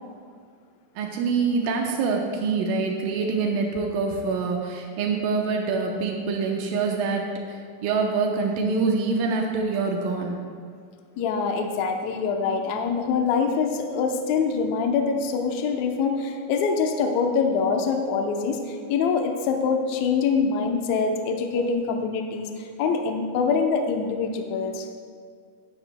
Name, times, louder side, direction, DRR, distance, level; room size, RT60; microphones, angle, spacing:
voice 1, 1.0-10.4, right 4 dB, 85° right, 1 dB, 2.5 m, -25 dB
voice 2, 11.2-24.9, left 5 dB, 70° left, 3 dB, 1.8 m, -24 dB
16.0 x 11.0 x 2.2 m, 2.1 s
omnidirectional pair, 3.9 m